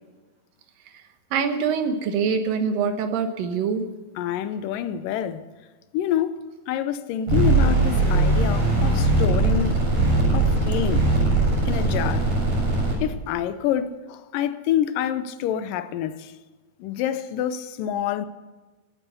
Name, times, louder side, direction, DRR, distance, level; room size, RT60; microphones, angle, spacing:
voice 1, 1.3-3.9, right 6 dB, 75° right, 2.9 m, -24 dB
voice 2, 4.2-5.4 5.9-9.8 10.3-11.0 11.7-12.3 13.0-16.3 16.8-18.3, left 10 dB, 80° left, 2.3 m, -27 dB
sound 1, 7.3-12.9, right 2 dB, 55° right, 8.4 m, -20 dB
18.0 x 9.0 x 8.2 m
omnidirectional pair, 4.1 m